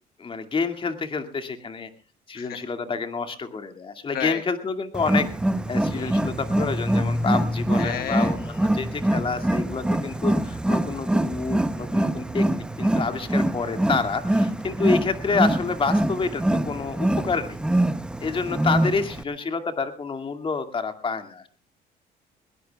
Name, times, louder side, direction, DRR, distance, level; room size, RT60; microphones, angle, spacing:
voice 1, 0.2-1.9 2.3-5.3 5.7-17.6 18.2-21.5, left 4 dB, 30° left, 7 dB, 2.2 m, -28 dB
Wild animals, 4.9-19.2, right 1 dB, 5° right, 0.7 m, -24 dB
voice 2, 7.8-8.3, left 10 dB, 65° left, 9 dB, 1.2 m, -32 dB
21.5 x 19.5 x 2.3 m, 0.32 s
cardioid pair, 110°, 17 cm